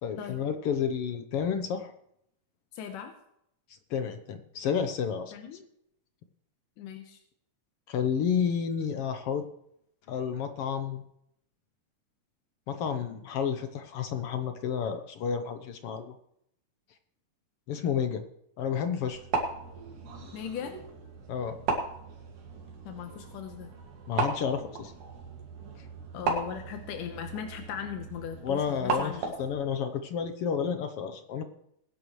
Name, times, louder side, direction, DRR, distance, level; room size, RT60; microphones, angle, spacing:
voice 1, 0.0-1.9 3.9-5.3 7.9-9.5 10.1-11.0 12.7-16.2 17.7-18.2 18.6-19.2 21.3-21.6 24.1-24.9 25.8-25.9 28.4-31.4, left 7 dB, 70° left, 8 dB, 1.4 m, -31 dB
voice 2, 2.7-3.1 5.3-5.7 6.8-7.2 20.3-20.7 22.9-23.7 26.1-29.3, left 8 dB, 90° left, 5 dB, 2.6 m, -38 dB
sound 1, 19.0-29.6, right 4 dB, 75° right, 3.7 m, -36 dB
21.5 x 10.5 x 3.2 m, 0.74 s
omnidirectional pair, 3.7 m